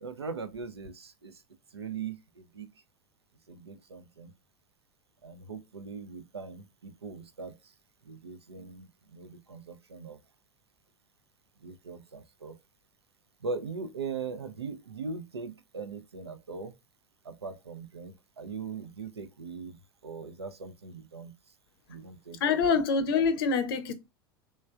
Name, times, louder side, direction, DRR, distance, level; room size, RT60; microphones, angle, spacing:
voice 1, 0.0-1.3 1.7-2.7 3.5-4.3 5.2-7.5 8.1-10.2 11.6-12.6 13.4-16.7 17.3-19.8 20.0-21.3 21.9-22.6, right 4 dB, 85° right, 0.5 m, -40 dB
voice 2, 22.4-23.9, left 5 dB, 60° left, 0.6 m, -25 dB
3.2 x 3.1 x 2.2 m
figure-of-eight pair, 85°, 13 cm